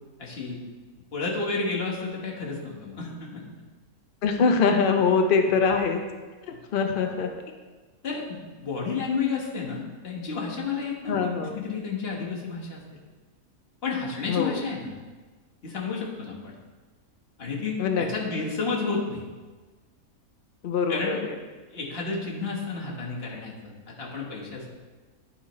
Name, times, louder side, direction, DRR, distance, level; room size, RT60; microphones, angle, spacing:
voice 1, 0.2-0.6 1.1-3.4 8.0-13.0 13.8-14.9 15.6-16.5 17.4-19.2 20.9-21.2 21.7-24.7, left 4 dB, 45° left, -3 dB, 1.4 m, -31 dB
voice 2, 4.2-6.0 6.5-7.3 11.1-11.5 14.3-14.6 17.8-18.1 20.6-21.3, left 5 dB, 70° left, 5 dB, 0.5 m, -23 dB
9.7 x 4.9 x 3.1 m, 1.3 s
omnidirectional pair, 1.6 m